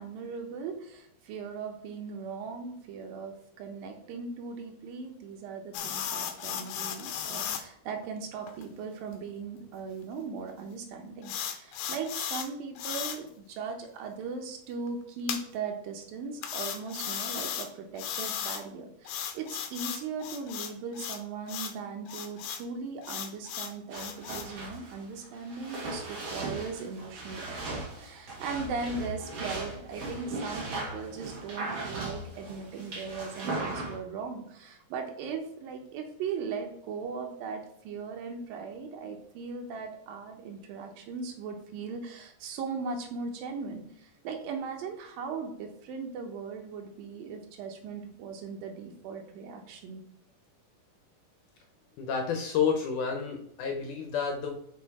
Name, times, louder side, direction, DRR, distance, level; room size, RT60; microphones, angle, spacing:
voice 1, 0.0-50.0, right 5 dB, 90° right, 3 dB, 2.7 m, -38 dB
sound 1, 5.7-7.6 8.0-8.1 8.5-8.6 9.1-9.2 11.2-12.5 12.8-13.2 15.3-15.4 16.4-17.7 18.0-18.6 19.1-21.2 21.5-21.7 22.1-22.6 23.0-24.5, left 9 dB, 90° left, 2.4 m, -35 dB
sound 2, 23.9-34.0, right 2 dB, 50° right, 2.6 m, -38 dB
voice 2, 52.0-54.6, left 6 dB, 75° left, 3 dB, 2.1 m, -30 dB
6.5 x 5.0 x 4.7 m, 0.74 s
omnidirectional pair, 3.9 m